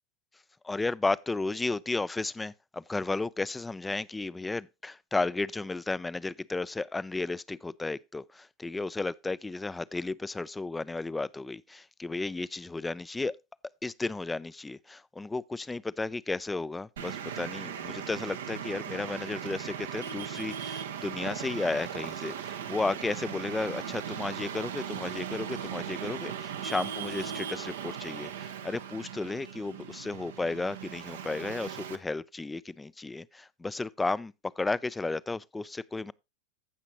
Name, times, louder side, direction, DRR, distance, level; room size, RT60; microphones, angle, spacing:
voice 1, 0.6-13.4 13.8-36.1, left 3 dB, 10° left, 0.4 m, -33 dB
Traffic noise roadway noise, 17.0-32.0, right 8 dB, 85° right, 1.2 m, -38 dB
16.0 x 5.9 x 2.9 m
hypercardioid pair, 105°, 0 cm